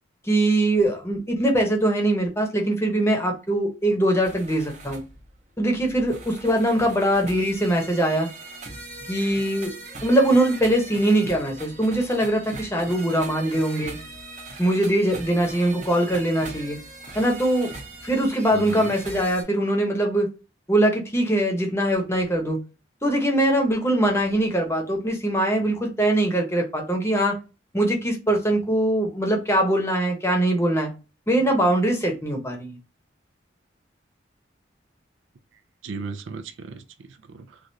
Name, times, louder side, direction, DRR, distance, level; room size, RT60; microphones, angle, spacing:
voice 1, 0.2-5.0 5.6-8.3 9.1-9.7 10.0-14.0 14.6-16.8 17.1-17.7 18.0-20.3 20.7-22.6 23.0-27.4 27.7-30.9 31.3-32.8, right 1 dB, 15° left, 0.8 m, -22 dB
sound 1, 4.2-19.4, right 3 dB, 40° right, 0.7 m, -40 dB
voice 2, 18.5-18.9 35.8-37.6, right 4 dB, 85° right, 0.4 m, -36 dB
3.2 x 2.4 x 2.6 m
head